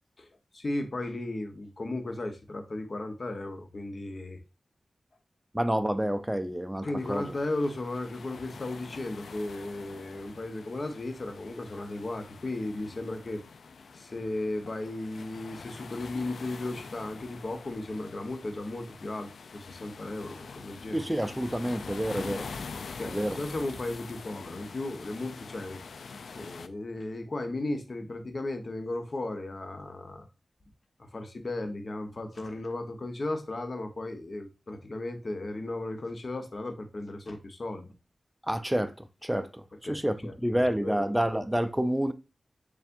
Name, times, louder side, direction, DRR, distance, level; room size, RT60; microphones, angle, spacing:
voice 1, 0.5-4.4 6.8-13.4 13.9-21.0 23.0-25.8 26.3-30.3 31.0-37.9 39.8-41.0, left 2 dB, 55° left, 0.9 m, -35 dB
voice 2, 5.5-7.3 20.9-22.5 23.1-23.4 38.4-42.1, equal, 10° right, 0.4 m, -29 dB
sound 1, 7.0-26.7, left 5 dB, 90° left, 0.3 m, -45 dB
6.8 x 2.5 x 2.5 m
cardioid pair, 50°, 0 cm